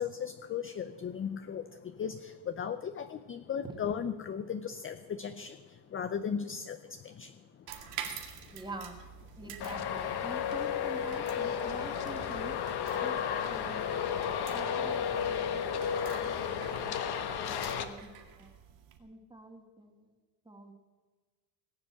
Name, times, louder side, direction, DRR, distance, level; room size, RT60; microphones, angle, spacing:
voice 1, 0.0-8.6 9.4-9.5 10.3-10.5, left 7 dB, 25° left, 9 dB, 0.5 m, -37 dB
sound 1, 7.7-19.0, right 8 dB, 85° right, 2.3 m, -48 dB
voice 2, 8.5-9.0 9.4-12.5 13.0-13.9 14.5-15.6 16.1-17.0 17.3-18.1 18.4-18.5 19.0-20.0 20.5-20.7, right 2 dB, 10° right, 4 dB, 1.8 m, -47 dB
Traffic noise roadway noise, 9.6-17.8, left 8 dB, 50° left, 1.3 m, -33 dB
19.0 x 7.9 x 7.4 m, 1.4 s
cardioid pair, 140°, 50 cm